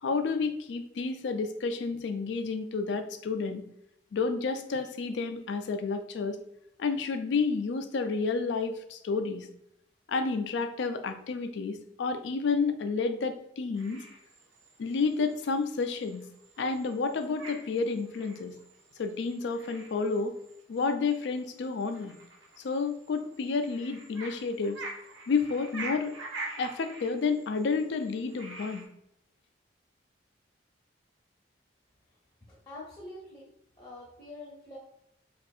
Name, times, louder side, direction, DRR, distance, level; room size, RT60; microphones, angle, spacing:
voice 1, 0.0-3.6 4.1-6.4 6.8-9.5 10.1-14.1 14.8-16.2 16.6-18.5 19.0-20.3 20.7-22.2 22.6-24.8 25.3-26.2 26.6-28.9, left 4 dB, 70° left, 8 dB, 0.4 m, -30 dB
sound 1, 13.8-28.8, right 3 dB, 85° right, 0.8 m, -46 dB
voice 2, 32.5-33.5 33.8-34.8, left 2 dB, 20° left, -6 dB, 0.7 m, -45 dB
2.7 x 2.4 x 4.1 m, 0.76 s
head